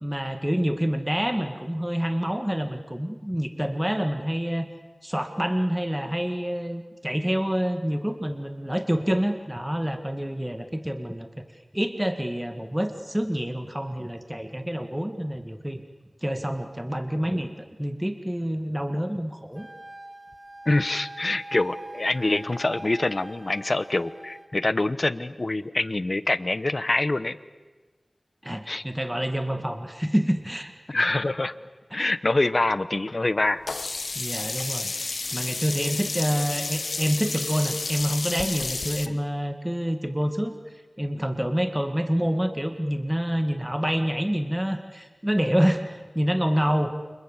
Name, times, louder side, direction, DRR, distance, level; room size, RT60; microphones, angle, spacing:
voice 1, 0.0-4.7 5.0-11.4 11.7-15.8 16.2-19.7 28.4-30.7 32.0-32.1 34.2-34.9 35.3-40.5 41.0-46.9, equal, 10° right, 7 dB, 1.9 m, -27 dB
Wind instrument woodwind instrument, 19.5-24.5, right 1 dB, 35° right, 3.6 m, -43 dB
voice 2, 20.7-27.4 28.7-28.8 30.9-31.5 31.9-33.6 39.0-39.2, left 2 dB, 50° left, 14 dB, 1.0 m, -25 dB
Sink (filling or washing), 33.7-39.1, left 3 dB, 80° left, 1.1 m, -31 dB
29.5 x 27.0 x 7.4 m, 1.3 s
wide cardioid pair, 55°, 0 cm